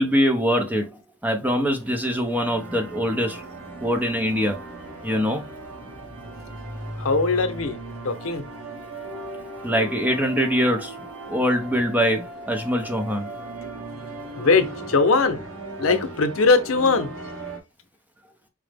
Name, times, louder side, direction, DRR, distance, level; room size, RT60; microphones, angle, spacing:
voice 1, 0.0-3.4 3.8-4.6 5.0-5.5 9.6-11.0 11.3-13.3, equal, 10° right, 0.5 m, -23 dB
sound 1, 1.8-17.6, right 2 dB, 85° right, 1.2 m, -37 dB
voice 2, 7.0-7.8 8.0-8.4 13.6-13.7 14.3-15.5 15.8-17.5, left 4 dB, 80° left, 0.7 m, -21 dB
4.8 x 2.0 x 3.3 m
head